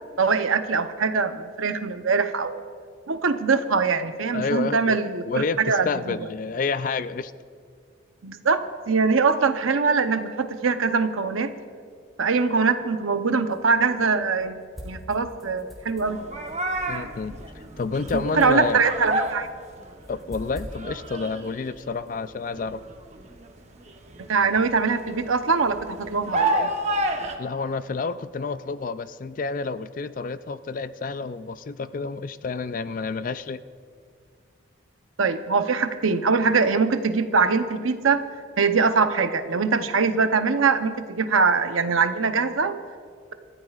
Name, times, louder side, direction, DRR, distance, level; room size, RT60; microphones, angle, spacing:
voice 1, 0.2-2.6 3.1-6.1 8.2-11.5 12.2-14.6 14.8-16.2 18.3-19.5 24.3-26.7 35.2-38.2 38.6-42.8, right 4 dB, 85° right, 8 dB, 0.8 m, -22 dB
voice 2, 4.3-5.0 5.2-7.3 16.9-18.8 20.1-22.8 27.4-33.6, left 4 dB, 40° left, 13 dB, 0.3 m, -29 dB
sound 1, 13.1-22.9, equal, ahead, 3.5 m, -46 dB
sound 2, 16.1-20.2 20.5-21.9 22.4-27.4, right 1 dB, 35° right, 1.0 m, -30 dB
27.0 x 14.0 x 2.4 m, 2.1 s
head